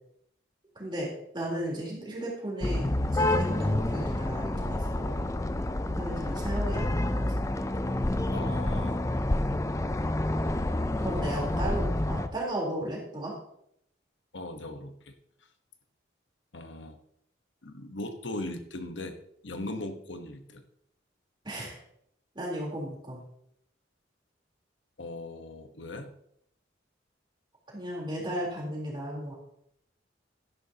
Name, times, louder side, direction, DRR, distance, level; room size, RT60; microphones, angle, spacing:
voice 1, 0.8-5.2 5.8-7.6 11.0-13.3 21.4-21.7 22.3-23.2 27.7-29.3, right 1 dB, 25° right, -3 dB, 3.7 m, -35 dB
sound 1, 2.6-12.3, left 1 dB, 15° left, 0.4 m, -28 dB
voice 2, 8.3-9.0 14.3-15.1 16.5-17.0 17.6-19.2 19.4-20.6 25.0-26.1, left 2 dB, 80° left, 7 dB, 1.2 m, -39 dB
12.0 x 11.0 x 2.9 m, 0.72 s
head